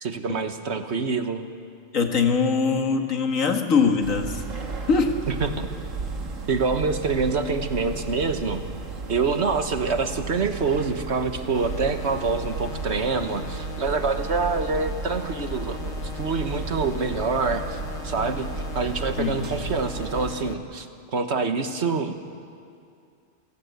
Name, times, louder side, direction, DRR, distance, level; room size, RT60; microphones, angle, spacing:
voice 1, 0.0-1.4 5.3-5.7 6.5-8.6 9.1-20.9 21.1-22.2, right 4 dB, 60° right, 7 dB, 1.5 m, -26 dB
voice 2, 1.9-4.4 4.9-5.2 19.2-19.5, left 5 dB, 85° left, 4 dB, 2.1 m, -22 dB
sound 1, 4.0-20.4, right 3 dB, 75° right, 2.1 m, -34 dB
sound 2, 11.5-20.5, left 6 dB, 60° left, 1.6 m, -40 dB
28.0 x 17.0 x 8.2 m, 2.4 s
omnidirectional pair, 1.3 m